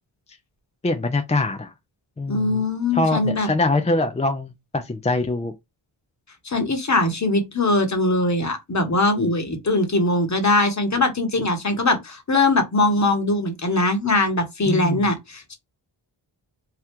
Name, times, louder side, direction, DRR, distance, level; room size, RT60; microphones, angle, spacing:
voice 1, 0.8-1.7 2.2-2.6 2.9-5.5 14.7-15.0, left 2 dB, 15° left, 0.4 m, -23 dB
voice 2, 2.3-3.5 6.4-15.5, left 2 dB, 35° left, 1.0 m, -21 dB
2.9 x 2.3 x 3.5 m
cardioid pair, 55°, 49 cm